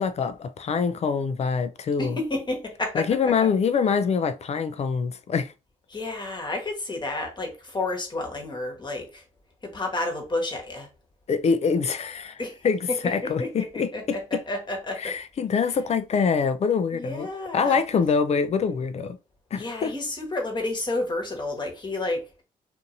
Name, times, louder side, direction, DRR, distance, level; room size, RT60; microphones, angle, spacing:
voice 1, 0.0-2.2 2.9-5.5 11.3-13.9 15.0-17.3 17.5-19.2 19.5-19.9, left 5 dB, 45° left, 0.4 m, -25 dB
voice 2, 2.0-3.5 5.9-9.2 9.6-10.9 12.4-12.6 12.9-15.2 15.7-15.8 16.9-17.8 19.5-22.4, left 2 dB, 30° left, 1.3 m, -31 dB
2.6 x 2.6 x 2.6 m
supercardioid pair, 60°, 15 cm